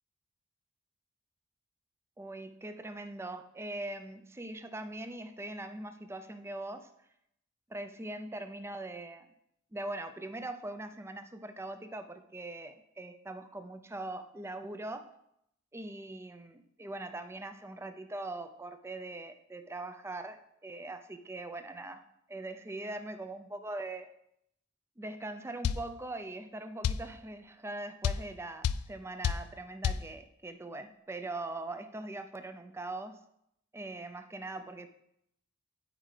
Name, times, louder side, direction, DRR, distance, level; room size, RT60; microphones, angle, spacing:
voice 1, 2.2-6.9 7.7-9.3 9.7-15.1 15.7-22.0 22.3-24.1 25.0-33.2 33.7-34.9, right 2 dB, 10° right, 9 dB, 0.4 m, -41 dB
sound 1, 25.6-25.9 26.8-27.1 28.0-28.3 28.6-28.9 29.2-29.5 29.8-30.1, left 8 dB, 80° left, 0.3 m, -28 dB
12.5 x 4.7 x 3.3 m, 0.78 s
head